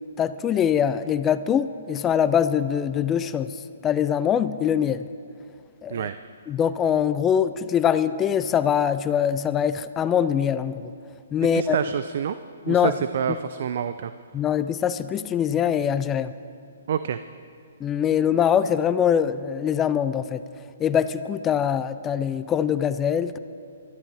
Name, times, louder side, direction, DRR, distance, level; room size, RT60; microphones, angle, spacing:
voice 1, 0.2-3.5 3.8-5.1 5.8-6.1 6.5-10.9 11.3-11.8 12.7-12.9 14.3-16.3 17.8-20.4 20.8-23.4, left 8 dB, 20° left, 13 dB, 0.4 m, -23 dB
voice 2, 11.5-12.4 12.7-14.1 16.9-17.2, right 8 dB, 55° right, 12 dB, 0.4 m, -27 dB
21.0 x 13.0 x 3.4 m, 2.4 s
figure-of-eight pair, 130°, 0 cm